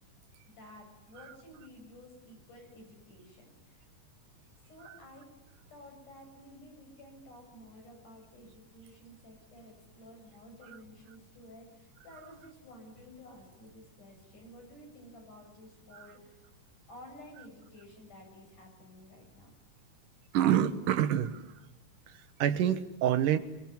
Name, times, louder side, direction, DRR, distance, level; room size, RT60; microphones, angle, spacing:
voice 1, 0.6-3.8 4.7-5.3 5.7-16.5 16.9-19.5, left 1 dB, 75° left, 2 dB, 8.8 m, -53 dB
voice 2, 20.3-21.4 22.1-23.4, right 10 dB, 85° right, 11 dB, 3.0 m, -27 dB
27.0 x 23.0 x 9.6 m, 0.95 s
omnidirectional pair, 3.6 m